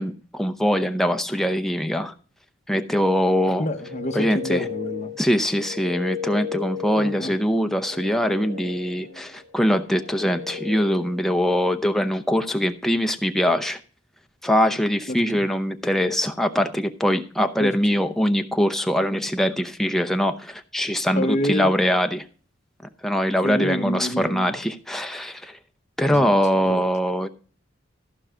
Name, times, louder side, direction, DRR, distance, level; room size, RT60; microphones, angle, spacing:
voice 1, 0.0-2.1 2.7-3.7 4.1-4.6 5.2-13.8 14.4-22.2 23.0-25.6 26.0-27.3, equal, ahead, 0.7 m, -22 dB
sound 1, 3.5-11.4, left 7 dB, 70° right, 4.1 m, -35 dB
voice 2, 3.6-5.1 6.9-7.3 15.1-15.4 17.6-17.7 21.2-21.7 23.4-24.5 26.0-26.8, left 1 dB, 35° left, 1.1 m, -28 dB
14.5 x 5.5 x 4.9 m
head